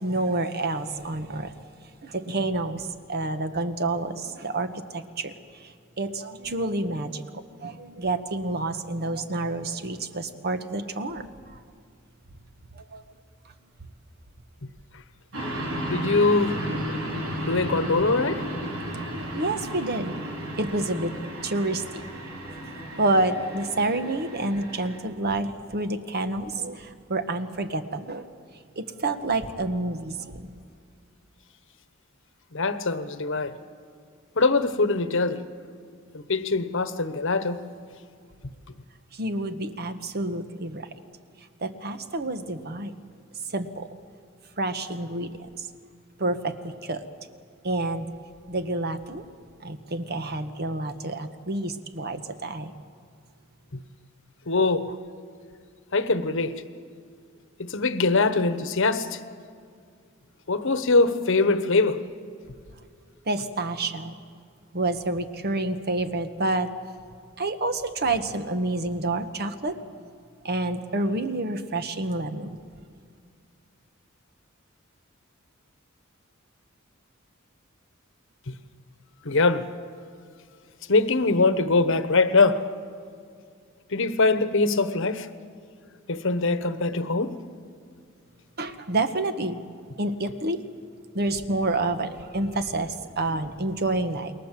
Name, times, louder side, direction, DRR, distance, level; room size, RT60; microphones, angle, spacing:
voice 1, 0.0-1.5 2.0-5.3 5.6-11.3 12.7-13.0 18.9-19.0 19.3-20.1 20.6-21.1 21.4-22.0 23.0-28.3 28.8-30.5 39.1-40.9 41.6-42.9 43.5-43.9 44.6-45.7 46.2-47.0 47.6-48.1 48.5-49.2 49.6-52.7 63.3-64.1 64.7-66.7 67.4-69.8 70.4-72.6 88.6-89.6 90.0-90.6 91.1-94.3, right 2 dB, 50° right, 1.4 m, -28 dB
sound 1, 15.3-25.0, equal, 80° right, 4.8 m, -33 dB
voice 2, 15.9-16.6 17.4-18.4 32.5-33.5 34.3-35.4 36.1-37.6 53.7-53.8 54.5-54.9 55.9-56.5 57.6-59.2 60.5-62.0 78.5-78.6 79.2-79.7 80.9-82.6 83.9-85.3 86.1-87.4, left 3 dB, 65° left, 1.2 m, -22 dB
28.5 x 21.5 x 7.6 m
head